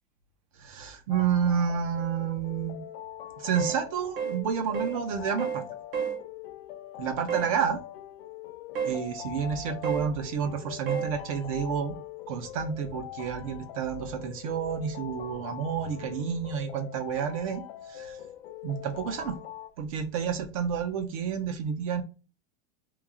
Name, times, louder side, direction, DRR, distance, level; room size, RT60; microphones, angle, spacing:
voice 1, 0.6-2.8 3.4-5.6 7.0-7.8 8.9-12.0 12.3-17.6 17.9-18.2 18.6-19.4 19.8-22.0, right 7 dB, 35° right, 0.4 m, -30 dB
sound 1, 1.1-19.7, left 12 dB, 85° left, 0.6 m, -43 dB
sound 2, 3.6-3.8 4.2-4.4 4.7-5.0 5.4-5.6 5.9-6.2 7.3-7.5 8.8-9.0 9.8-10.1 10.9-11.1, right 7 dB, 65° right, 1.4 m, -30 dB
3.0 x 2.2 x 3.5 m
supercardioid pair, 175°, 31 cm